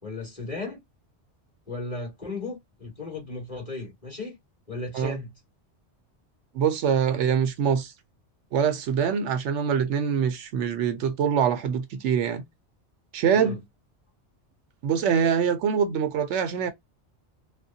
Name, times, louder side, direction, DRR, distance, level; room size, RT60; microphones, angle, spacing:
voice 1, 0.0-0.8 1.7-4.4 4.7-5.3 13.3-13.6, left 3 dB, 30° left, 1.8 m, -35 dB
voice 2, 6.5-7.9 8.5-12.4 13.1-13.6 14.8-16.7, right 7 dB, 80° right, 0.9 m, -24 dB
3.3 x 2.1 x 2.7 m
omnidirectional pair, 1.2 m